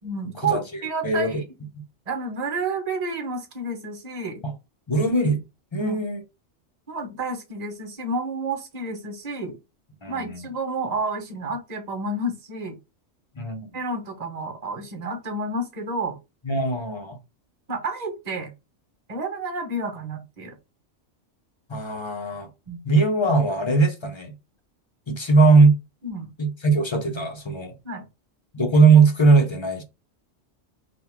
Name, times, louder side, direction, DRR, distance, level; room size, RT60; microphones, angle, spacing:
voice 1, 0.0-1.4 2.1-4.4 5.8-6.0 6.9-9.6 10.1-12.8 13.7-16.2 17.7-18.5 19.1-20.5 22.7-22.8 26.0-26.3 27.8-28.0, right 2 dB, 35° right, 1.2 m, -30 dB
voice 2, 1.0-1.4 4.4-4.5 4.9-5.4 5.7-6.2 10.0-10.5 13.4-13.7 16.4-17.2 21.7-22.5 22.8-24.3 25.1-25.8 26.4-27.7 28.5-29.8, right 3 dB, 25° left, 0.8 m, -19 dB
3.7 x 2.5 x 4.5 m
omnidirectional pair, 1.3 m